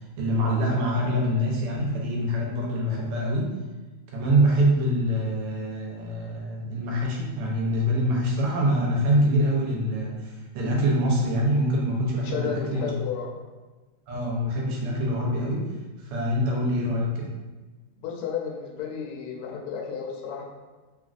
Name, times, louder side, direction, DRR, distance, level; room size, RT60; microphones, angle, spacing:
voice 1, 0.2-3.6 4.1-12.9 14.1-15.7 16.0-17.3, equal, 85° right, -2 dB, 1.6 m, -25 dB
voice 2, 12.2-13.3 18.0-20.4, left 7 dB, 85° left, -2 dB, 1.6 m, -32 dB
3.8 x 2.4 x 2.4 m, 1.2 s
omnidirectional pair, 2.4 m